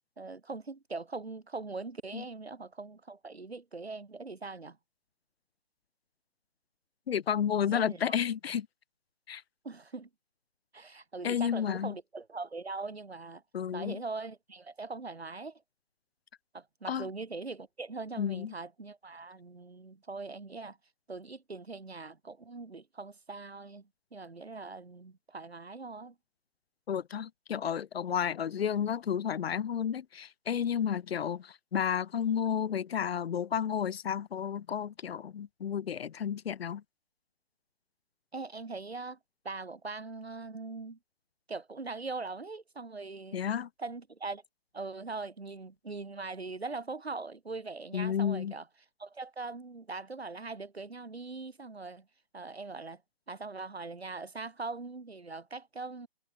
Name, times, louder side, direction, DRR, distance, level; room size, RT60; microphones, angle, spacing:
voice 1, 0.2-4.8 7.7-8.0 9.6-10.1 10.7-13.4 13.7-15.6 16.5-20.8 21.1-26.1 38.3-39.2 39.4-41.0 41.5-43.4 43.8-44.4 44.7-48.6 49.0-52.1 52.3-53.0 53.3-56.1, right 3 dB, 85° right, 3.1 m, -41 dB
voice 2, 7.1-8.7 9.3-9.4 11.2-11.9 13.5-14.0 16.9-17.1 18.2-18.5 26.9-36.8 43.3-43.7 47.9-48.5, left 8 dB, 75° left, 0.5 m, -31 dB
figure-of-eight pair, 155°, 31 cm